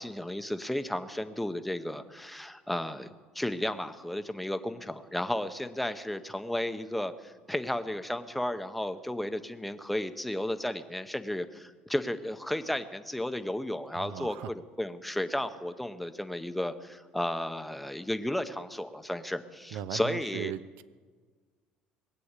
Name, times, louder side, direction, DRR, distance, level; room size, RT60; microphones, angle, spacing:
voice 1, 0.0-3.1 3.3-20.5, left 1 dB, ahead, 9 dB, 0.7 m, -33 dB
voice 2, 13.9-14.5 19.7-20.8, right 11 dB, 75° right, 17 dB, 0.6 m, -38 dB
20.5 x 8.4 x 8.2 m, 1.5 s
cardioid pair, 150°, 3 cm